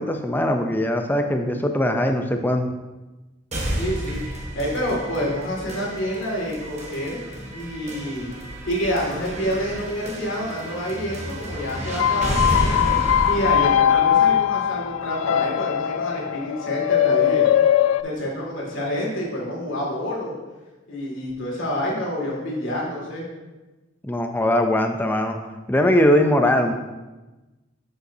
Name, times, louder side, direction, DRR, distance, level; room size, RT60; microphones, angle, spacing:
voice 1, 0.0-2.7 24.0-25.4 25.7-26.7, left 1 dB, 10° left, 5 dB, 0.5 m, -20 dB
sound 1, 3.5-15.5, right 1 dB, 35° right, 1.0 m, -31 dB
voice 2, 3.8-4.2 4.6-7.2 7.5-8.3 8.7-13.0 13.3-17.4 18.0-20.4 20.9-23.2, equal, 70° left, -3 dB, 2.1 m, -28 dB
sound 2, 11.8-18.0, left 10 dB, 90° left, 0.3 m, -20 dB
10.0 x 5.4 x 2.7 m, 1.1 s
head